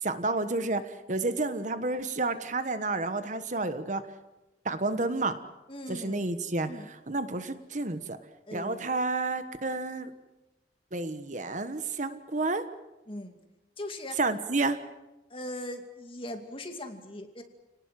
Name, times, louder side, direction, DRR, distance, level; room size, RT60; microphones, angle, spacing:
voice 1, 0.0-4.0 4.6-5.4 5.9-6.7 7.1-8.2 8.5-10.1 10.9-12.6 14.2-14.8, right 3 dB, 45° right, 10 dB, 1.3 m, -30 dB
voice 2, 5.7-6.3 6.7-6.9 8.5-8.9 13.1-13.4 13.8-14.2 15.3-17.4, left 1 dB, 30° left, 5 dB, 2.5 m, -40 dB
29.5 x 19.0 x 7.7 m, 1.0 s
head